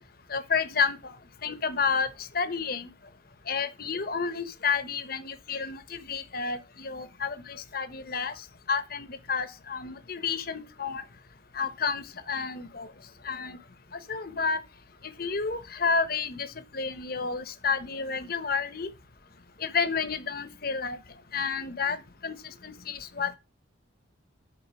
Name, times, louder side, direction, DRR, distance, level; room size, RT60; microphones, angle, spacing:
voice 1, 0.3-1.1 1.4-2.9 3.5-8.3 8.7-11.0 11.5-12.9 13.2-13.6 13.9-14.6 15.2-16.5 16.7-18.9 19.6-21.0 21.3-22.0 22.2-22.3 22.6-23.4, left 5 dB, 50° left, 1.0 m, -30 dB
11.0 x 4.0 x 5.9 m
head